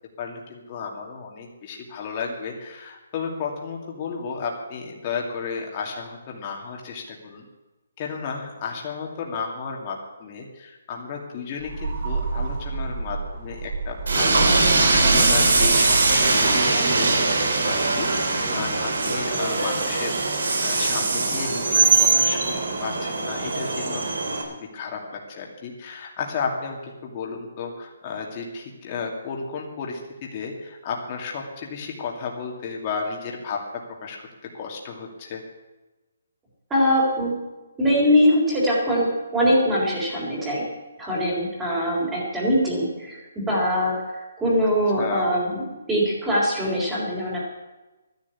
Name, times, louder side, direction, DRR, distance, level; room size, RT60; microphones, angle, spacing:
voice 1, 0.2-7.4 8.0-20.2 20.6-22.5 22.8-24.2 24.5-33.6 34.0-34.3 34.5-35.4 45.0-45.3, left 5 dB, 25° left, 0 dB, 2.4 m, -33 dB
sound 1, 11.6-16.9, right 4 dB, 50° right, 6.4 m, -29 dB
Train, 14.1-24.4, right 3 dB, 75° right, 3.7 m, -21 dB
voice 2, 36.7-37.3 37.8-40.6 41.0-45.6 45.9-47.4, equal, 10° right, -5 dB, 3.8 m, -22 dB
13.0 x 10.5 x 8.5 m, 1.1 s
hypercardioid pair, 170°, 0 cm